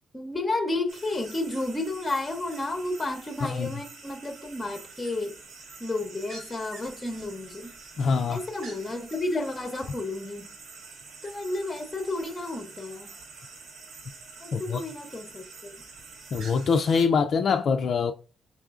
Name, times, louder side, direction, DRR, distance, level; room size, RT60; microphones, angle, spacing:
voice 1, 0.1-5.4 5.8-7.7 8.3-10.5 11.2-13.1 14.4-15.7, left 2 dB, 15° left, 0.7 m, -32 dB
sound 1, 0.9-17.1, right 4 dB, 85° right, 1.4 m, -47 dB
voice 2, 8.0-8.4 14.5-14.8 16.3-18.1, left 5 dB, 50° left, 0.3 m, -24 dB
5.5 x 3.6 x 2.4 m
cardioid pair, 150°, 0 cm